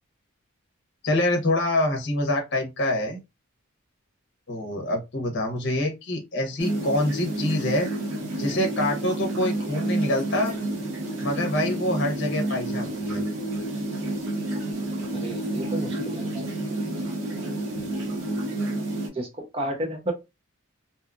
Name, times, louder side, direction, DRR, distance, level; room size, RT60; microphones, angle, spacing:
voice 1, 1.0-3.2 4.5-7.9 8.4-10.5 11.2-13.2, left 1 dB, 50° left, 0.8 m, -26 dB
sound 1, 6.6-19.1, right 1 dB, 60° right, 0.9 m, -29 dB
voice 2, 15.1-16.5 19.1-19.3 19.5-20.1, right 1 dB, 25° right, 0.6 m, -31 dB
2.7 x 2.4 x 2.3 m
head